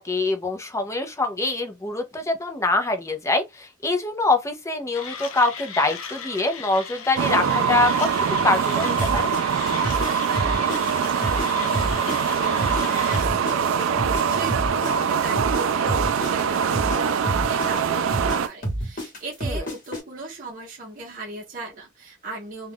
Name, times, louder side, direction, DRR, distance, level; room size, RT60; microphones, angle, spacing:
voice 1, 0.0-8.1 8.4-9.3 19.5-19.6, left 2 dB, 15° left, 0.5 m, -24 dB
Mechanisms, 4.9-13.3, left 6 dB, 85° left, 0.5 m, -37 dB
sound 1, 7.2-18.5, right 7 dB, 75° right, 0.3 m, -23 dB
sound 2, 9.0-11.5 11.7-15.6 15.9-20.0, right 1 dB, 40° left, 1.1 m, -29 dB
voice 2, 9.8-22.7, right 2 dB, 40° right, 0.7 m, -38 dB
2.4 x 2.2 x 3.4 m
head